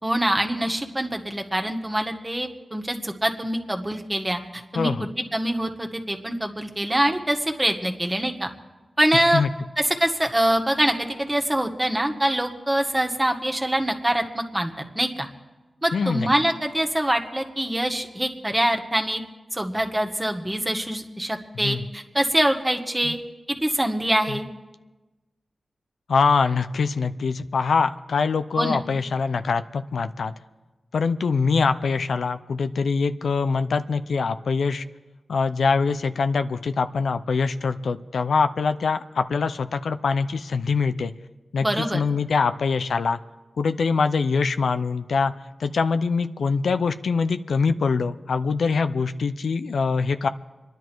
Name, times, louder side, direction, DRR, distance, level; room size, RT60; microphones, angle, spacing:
voice 1, 0.0-4.9 5.3-8.5 9.0-9.4 9.8-15.3 15.8-19.2 19.5-23.2 23.5-24.5 28.6-28.8 41.6-42.0, right 1 dB, 20° right, 4 dB, 1.8 m, -24 dB
voice 2, 4.7-5.1 9.3-9.5 15.9-16.3 21.6-21.8 23.0-23.1 24.3-24.4 26.1-30.3 30.9-34.8 35.3-41.1 41.5-43.2 43.6-45.3 45.6-50.3, left 5 dB, 85° left, 10 dB, 0.6 m, -23 dB
26.5 x 10.5 x 4.6 m, 1.2 s
cardioid pair, 45°, 0 cm